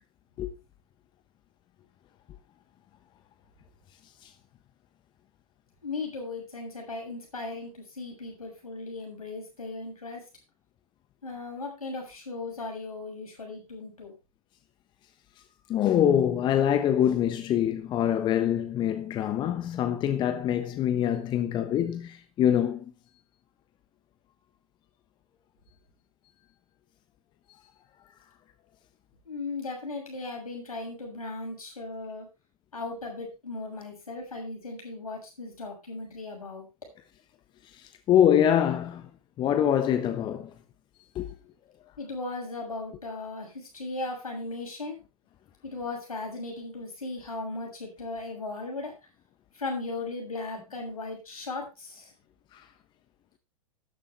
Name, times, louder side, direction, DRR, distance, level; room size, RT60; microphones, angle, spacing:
voice 1, 5.8-10.2 11.2-14.1 29.3-32.3 32.7-36.7 42.0-45.0 45.6-48.9 49.6-52.1, left 3 dB, 75° left, 6.9 m, -37 dB
voice 2, 15.7-22.9 38.1-39.0 39.4-40.5 41.1-41.4 52.5-52.6, left 10 dB, 25° left, 1.1 m, -24 dB
13.0 x 11.0 x 3.3 m
figure-of-eight pair, 100°, 19 cm